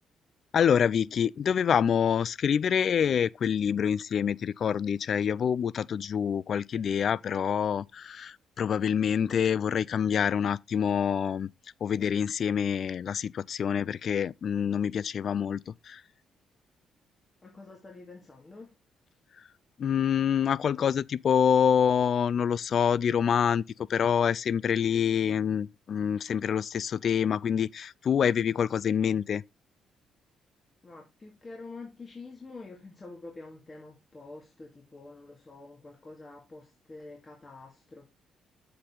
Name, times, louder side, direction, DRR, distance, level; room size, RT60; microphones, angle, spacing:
voice 1, 0.5-11.5 11.8-16.0 19.8-29.4, left 8 dB, 55° left, 0.4 m, -26 dB
voice 2, 17.4-18.8 30.8-38.1, left 3 dB, 30° left, 2.5 m, -47 dB
7.7 x 6.7 x 3.8 m
cardioid pair, 80°, 0 cm